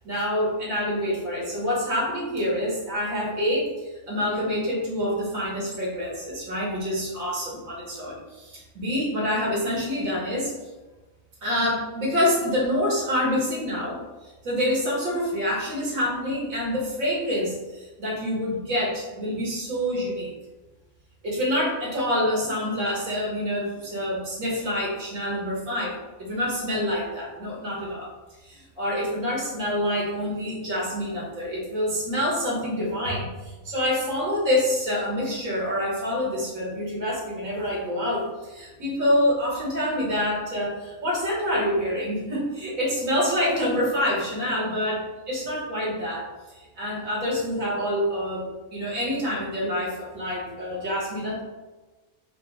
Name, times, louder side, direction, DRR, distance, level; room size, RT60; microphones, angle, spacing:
voice 1, 0.0-10.5 11.4-20.3 21.2-28.1 28.4-46.3 46.5-51.4, left 1 dB, 90° right, -4 dB, 1.9 m, -27 dB
5.1 x 2.2 x 4.7 m, 1.2 s
omnidirectional pair, 1.4 m